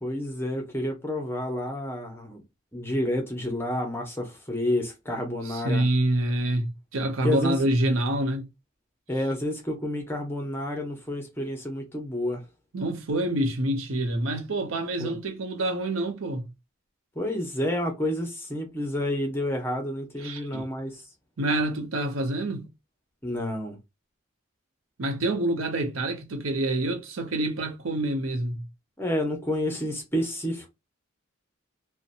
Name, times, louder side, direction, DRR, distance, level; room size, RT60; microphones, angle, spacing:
voice 1, 0.0-2.4 2.7-5.9 7.2-7.5 9.1-12.4 15.0-15.1 17.1-21.1 23.2-23.8 29.0-30.7, left 1 dB, 10° left, 0.7 m, -29 dB
voice 2, 5.4-8.5 12.7-16.5 20.2-20.7 21.4-22.7 25.0-28.7, right 1 dB, 80° right, 0.7 m, -27 dB
2.7 x 2.1 x 2.5 m
head